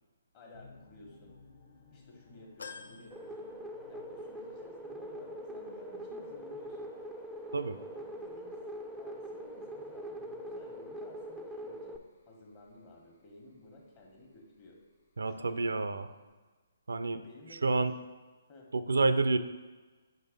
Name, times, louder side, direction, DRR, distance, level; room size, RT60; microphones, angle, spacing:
voice 1, 0.3-1.4 1.9-3.6 3.9-6.9 7.7-8.6 9.0-14.8 15.2-16.0 17.2-18.0 18.5-18.7, left 2 dB, 35° left, 0 dB, 1.4 m, -54 dB
sound 1, 0.5-16.3, left 3 dB, 60° left, 1.0 m, -63 dB
sound 2, 2.6-4.2 4.7-4.8 6.0-6.1, left 5 dB, 80° left, 0.5 m, -49 dB
sound 3, 3.1-12.0, equal, ahead, 0.3 m, -43 dB
voice 2, 15.2-16.1 16.9-17.2 17.6-17.9 18.7-19.4, right 3 dB, 85° right, 11 dB, 0.4 m, -28 dB
5.0 x 4.0 x 5.1 m, 1.3 s
hypercardioid pair, 145°, 0 cm